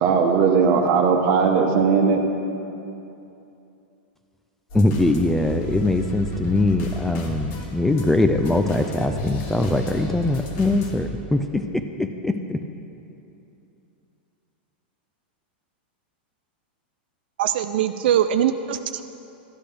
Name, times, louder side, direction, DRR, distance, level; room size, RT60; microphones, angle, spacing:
voice 1, 0.0-2.2, right 5 dB, 45° right, 4 dB, 1.0 m, -18 dB
sound 1, 4.7-11.1, left 2 dB, 45° left, 1.4 m, -33 dB
voice 2, 4.7-12.6, left 2 dB, 5° left, 6 dB, 0.3 m, -22 dB
voice 3, 17.4-19.0, right 10 dB, 70° right, 9 dB, 0.4 m, -22 dB
12.5 x 9.8 x 3.4 m, 2.8 s
supercardioid pair, 145°, 6 cm